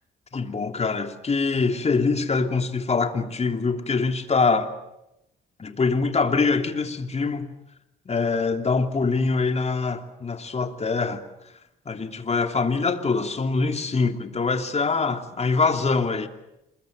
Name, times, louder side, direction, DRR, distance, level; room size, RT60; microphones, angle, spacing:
voice 1, 0.3-4.7 5.6-7.5 8.0-11.2 11.8-16.3, left 4 dB, 35° left, 3.0 m, -24 dB
27.5 x 22.0 x 8.0 m
cardioid pair, 90°, 20 cm